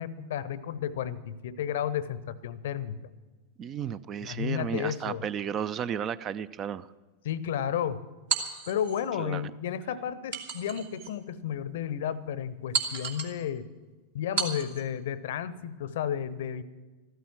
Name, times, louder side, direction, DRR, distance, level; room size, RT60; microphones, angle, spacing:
voice 1, 0.0-3.0 4.2-5.2 7.2-8.0 8.7-13.7 14.1-16.6, left 9 dB, 55° left, 18 dB, 0.7 m, -32 dB
voice 2, 3.6-6.9 9.2-9.4, right 8 dB, 30° right, 18 dB, 0.4 m, -33 dB
sound 1, 8.3-9.0 10.3-11.1 11.7-11.8 12.7-13.4 14.4-14.9, right 6 dB, 60° right, 1.9 m, -32 dB
14.5 x 13.0 x 6.1 m, 1.3 s
figure-of-eight pair, 90°, 0 cm